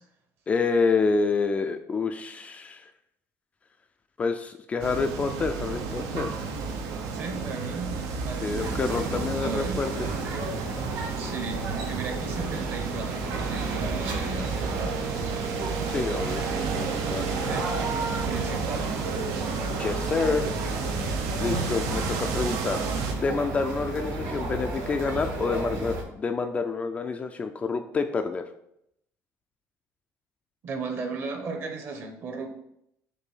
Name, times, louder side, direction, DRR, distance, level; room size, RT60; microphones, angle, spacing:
voice 1, 0.5-2.8 4.2-6.4 8.4-9.9 15.9-17.6 19.7-20.4 21.4-22.8 23.1-28.4, left 4 dB, 20° left, 6 dB, 0.3 m, -28 dB
sound 1, 4.8-23.1, right 5 dB, 80° right, 0.9 m, -32 dB
voice 2, 7.1-8.0 8.2-8.6 9.1-9.8 11.1-15.2 17.4-17.7 18.2-18.9 30.6-32.5, right 4 dB, 40° right, 5 dB, 1.0 m, -35 dB
sound 2, 8.5-26.0, right 2 dB, 65° right, 1.8 m, -33 dB
Brass instrument, 14.6-18.7, right 6 dB, 20° right, 0.7 m, -37 dB
6.6 x 2.7 x 5.5 m, 0.76 s
cardioid pair, 160°, 6 cm